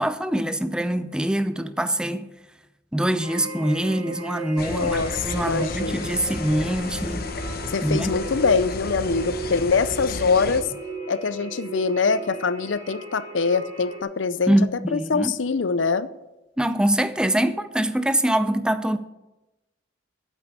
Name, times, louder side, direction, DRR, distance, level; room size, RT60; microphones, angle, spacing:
voice 1, 0.0-2.3 2.9-7.3 7.8-8.1 14.5-15.3 16.6-19.0, right 1 dB, 5° right, 0.5 m, -24 dB
sound 1, 3.2-14.0, right 3 dB, 25° right, 2.7 m, -36 dB
sound 2, 4.6-10.6, left 3 dB, 55° left, 0.9 m, -33 dB
voice 2, 4.7-6.1 7.7-10.7 11.1-14.5 14.9-16.1, left 4 dB, 80° left, 0.6 m, -24 dB
8.6 x 8.3 x 8.6 m
head